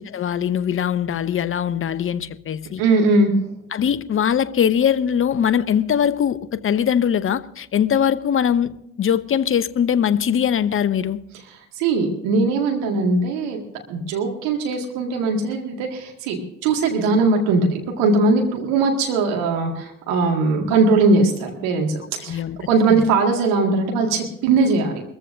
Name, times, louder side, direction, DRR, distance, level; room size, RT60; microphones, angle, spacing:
voice 1, 0.1-2.8 3.7-8.7 9.0-11.2 22.3-22.6 22.9-23.0, left 8 dB, 35° left, 0.8 m, -21 dB
voice 2, 2.8-3.3 11.8-13.6 13.9-22.4 22.7-25.0, right 3 dB, 70° right, 2.0 m, -20 dB
23.5 x 14.5 x 2.6 m
figure-of-eight pair, 45°, 35 cm